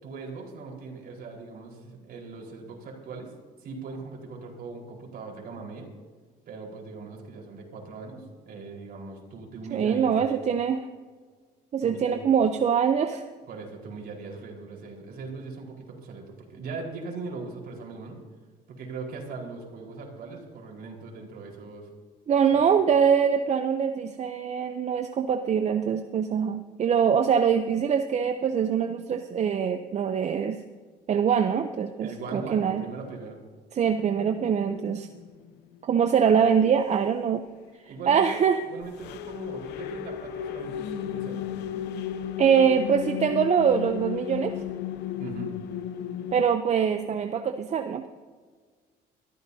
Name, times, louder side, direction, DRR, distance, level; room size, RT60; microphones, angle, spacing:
voice 1, 0.0-3.3 3.6-5.9 6.5-10.4 11.8-12.2 13.5-18.2 18.7-21.9 22.5-22.6 32.0-33.4 37.8-40.7 41.0-41.5 45.2-45.5, right 4 dB, 60° right, 0 dB, 4.5 m, -40 dB
voice 2, 9.7-10.8 11.7-13.2 22.3-30.6 31.1-32.8 33.7-35.1 35.8-37.4 38.1-38.6 42.4-44.5 46.3-48.1, right 7 dB, 40° right, 7 dB, 0.7 m, -23 dB
sound 1, 33.9-35.8 38.8-46.4, left 10 dB, 85° left, 0.8 m, -34 dB
22.0 x 14.0 x 2.8 m, 1.5 s
cardioid pair, 110°, 17 cm